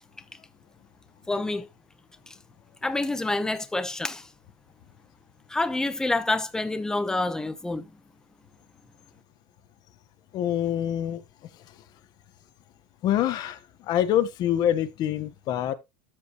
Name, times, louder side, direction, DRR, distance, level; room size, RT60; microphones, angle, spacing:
voice 1, 1.3-1.7 2.8-4.3 5.5-7.9, left 2 dB, 5° left, 0.9 m, -27 dB
voice 2, 10.3-11.2 13.0-13.6 13.9-15.7, left 11 dB, 40° left, 1.2 m, -25 dB
13.0 x 5.2 x 3.0 m
supercardioid pair, 140°, 10 cm